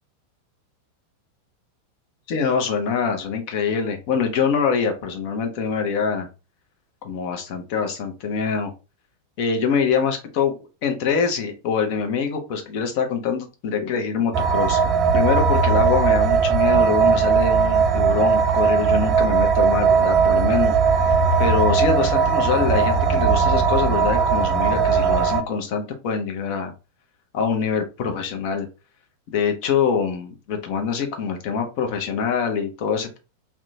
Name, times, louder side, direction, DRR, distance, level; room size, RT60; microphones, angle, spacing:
voice 1, 2.3-6.3 7.0-8.7 9.4-10.5 10.8-14.8 15.1-21.1 21.4-26.7 27.3-28.7 29.3-33.2, left 6 dB, 45° left, 5 dB, 0.7 m, -24 dB
sound 1, 14.3-25.4, right 5 dB, 30° right, 0.4 m, -18 dB
2.7 x 2.2 x 2.6 m, 0.31 s
figure-of-eight pair, 90°, 0 cm